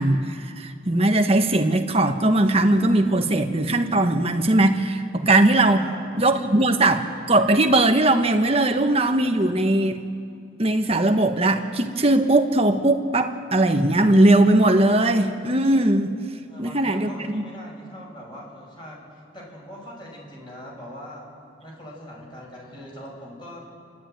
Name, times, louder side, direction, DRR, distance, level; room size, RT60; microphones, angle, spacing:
voice 1, 0.0-5.8 6.2-10.0 10.6-16.1 16.6-17.4, right 2 dB, 30° right, 5 dB, 1.3 m, -19 dB
voice 2, 5.7-6.2 16.5-21.3 21.6-23.6, equal, 25° left, -2 dB, 6.1 m, -41 dB
30.0 x 12.5 x 9.1 m, 2.5 s
head